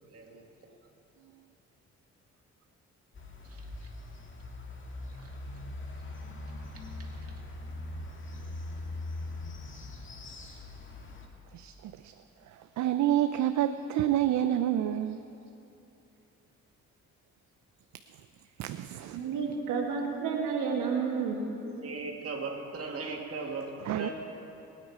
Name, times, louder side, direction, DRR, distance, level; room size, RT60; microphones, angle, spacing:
voice 1, 0.0-0.4 3.4-3.9 5.2-5.3 7.0-7.1 19.1-19.3 21.7-24.1, right 3 dB, 50° right, 0 dB, 2.5 m, -39 dB
sound 1, 3.1-11.3, left 2 dB, 40° left, 1.9 m, -41 dB
voice 2, 11.5-12.1 12.8-15.2 18.6-19.2 23.9-24.1, right 12 dB, 70° right, 9 dB, 0.5 m, -28 dB
voice 3, 19.1-21.6, right 5 dB, 90° right, 0 dB, 2.1 m, -30 dB
21.5 x 9.4 x 4.9 m, 2.9 s
cardioid pair, 90°, 30 cm